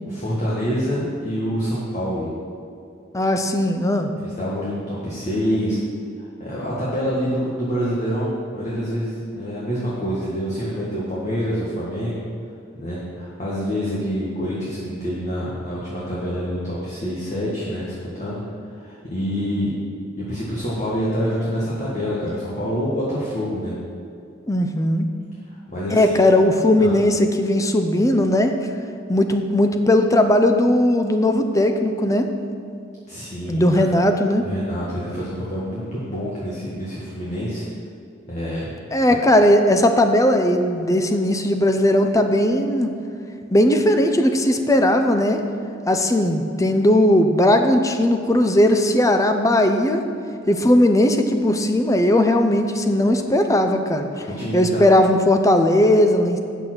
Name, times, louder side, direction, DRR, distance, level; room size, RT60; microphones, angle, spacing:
voice 1, 0.1-2.3 4.2-5.8 6.4-12.2 12.7-18.4 18.8-19.7 20.2-23.7 25.5-26.2 26.8-26.9 33.1-33.8 34.4-37.6 38.3-39.0 54.3-54.8, equal, 40° left, -7 dB, 1.7 m, -26 dB
voice 2, 3.1-4.1 24.5-25.1 25.9-28.5 29.1-32.3 33.5-34.4 38.9-42.9 43.5-45.4 45.9-50.0 50.5-54.1 54.5-56.4, left 1 dB, 15° left, 6 dB, 0.6 m, -18 dB
8.7 x 6.9 x 6.1 m, 2.5 s
head